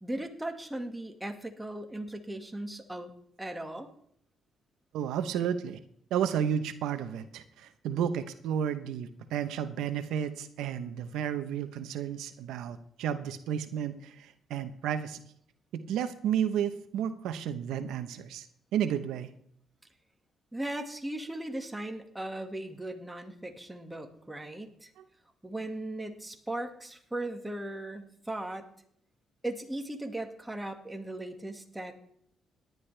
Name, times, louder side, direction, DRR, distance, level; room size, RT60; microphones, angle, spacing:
voice 1, 0.0-3.1 3.4-3.9 20.5-24.9 25.4-28.7 29.4-32.0, right 1 dB, 10° right, 4 dB, 1.9 m, -38 dB
voice 2, 4.9-5.8 6.1-15.2 15.9-18.5 18.7-19.3 25.0-25.1, right 9 dB, 90° right, 10 dB, 0.9 m, -32 dB
17.5 x 10.5 x 3.4 m, 0.66 s
cardioid pair, 90°, 0 cm